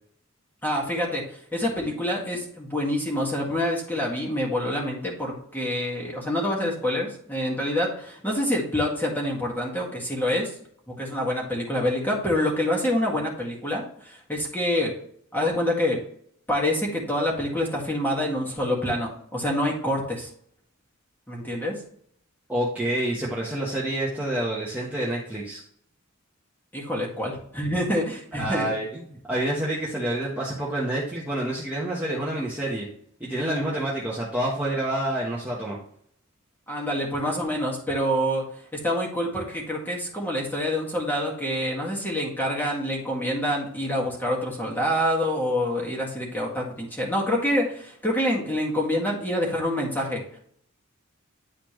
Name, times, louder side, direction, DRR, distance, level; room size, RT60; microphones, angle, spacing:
voice 1, 0.6-10.6 11.0-14.9 15.3-16.0 16.5-20.3 21.3-21.8 26.7-28.7 33.4-33.6 36.7-50.4, left 1 dB, 10° left, -3 dB, 1.9 m, -26 dB
voice 2, 22.5-25.6 28.4-32.9 33.2-35.8, right 1 dB, 10° right, -6 dB, 1.2 m, -28 dB
10.0 x 4.2 x 3.1 m, 0.64 s
head